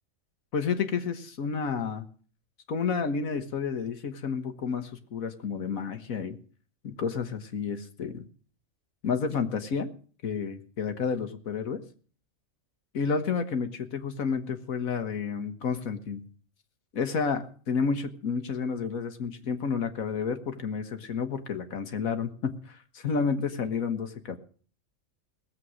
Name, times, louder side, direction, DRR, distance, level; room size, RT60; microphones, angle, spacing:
voice 1, 0.5-2.0 2.7-6.4 6.8-8.3 9.0-9.9 10.2-11.8 12.9-16.2 16.9-24.4, left 5 dB, 80° left, 8 dB, 1.7 m, -30 dB
19.0 x 7.8 x 6.2 m, 0.43 s
omnidirectional pair, 1.4 m